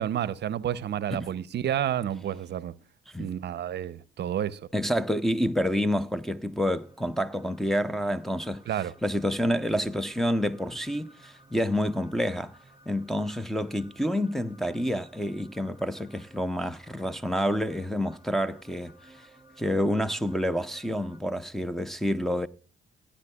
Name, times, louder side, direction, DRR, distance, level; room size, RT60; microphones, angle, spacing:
voice 1, 0.0-2.8 3.2-4.6 8.7-8.9, right 10 dB, 60° right, 0.6 m, -30 dB
voice 2, 4.7-8.6 9.0-12.5 12.9-18.9 19.6-22.5, equal, ahead, 0.6 m, -28 dB
sound 1, 5.7-21.2, right 1 dB, 15° right, 2.6 m, -57 dB
16.0 x 9.9 x 2.3 m
cardioid pair, 90°, 20 cm